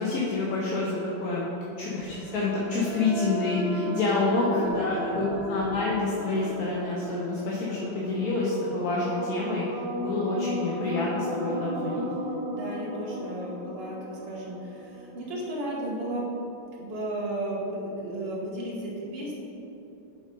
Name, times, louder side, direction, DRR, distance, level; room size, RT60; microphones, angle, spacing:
voice 1, 0.0-1.5 1.8-12.0, left 3 dB, 60° left, -5 dB, 1.2 m, -28 dB
sound 1, 1.7-15.6, left 1 dB, 70° right, 1.5 m, -36 dB
voice 2, 4.0-4.3 4.6-5.1 12.5-16.3 16.7-19.4, right 1 dB, 35° right, -5 dB, 1.4 m, -34 dB
7.4 x 3.9 x 5.3 m, 3.0 s
omnidirectional pair, 2.1 m